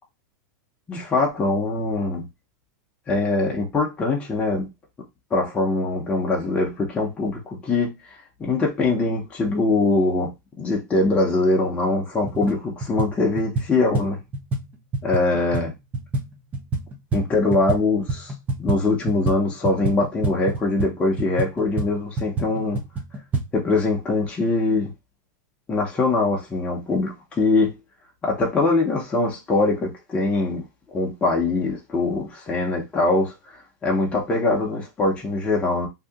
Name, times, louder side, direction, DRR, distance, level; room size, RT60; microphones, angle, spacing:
voice 1, 0.9-2.2 3.1-4.7 5.3-7.9 8.4-10.3 10.6-14.2 15.0-15.7 17.1-18.3 18.6-22.8 23.5-24.9 25.7-27.7 28.2-30.6 30.9-35.9, left 3 dB, 15° left, 0.8 m, -22 dB
sound 1, 12.2-12.5 12.8-17.8 18.1-23.5, right 3 dB, 15° right, 0.6 m, -28 dB
2.8 x 2.4 x 3.5 m
supercardioid pair, 155°, 10 cm